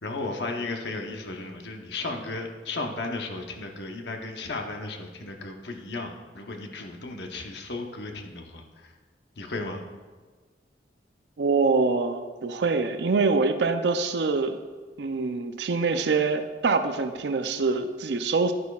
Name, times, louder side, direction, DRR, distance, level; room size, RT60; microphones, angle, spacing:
voice 1, 0.0-8.9 9.4-9.8, left 3 dB, 70° left, 3 dB, 0.9 m, -35 dB
voice 2, 11.4-14.6 15.0-18.5, right 4 dB, 70° right, 8 dB, 0.5 m, -25 dB
10.5 x 9.4 x 2.4 m, 1.4 s
head